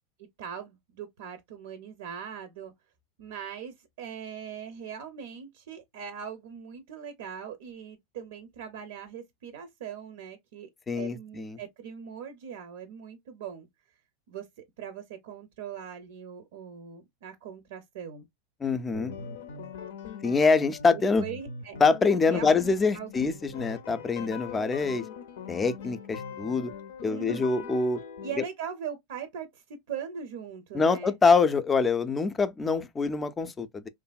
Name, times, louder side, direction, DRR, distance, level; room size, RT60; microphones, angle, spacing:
voice 1, 0.2-2.7 3.2-10.7 10.9-13.7 14.3-14.5 14.8-18.3 20.9-21.8 22.2-23.3 27.1-27.7 28.2-31.2, right 7 dB, 75° right, 0.5 m, -40 dB
voice 2, 10.9-11.6 18.6-19.1 20.2-21.2 21.8-25.0 25.5-26.7 27.0-28.0 30.7-33.9, left 4 dB, 20° left, 0.4 m, -25 dB
guitar loop, 18.9-28.3, left 6 dB, 80° left, 0.5 m, -42 dB
2.7 x 2.5 x 2.2 m
hypercardioid pair, 110°, 0 cm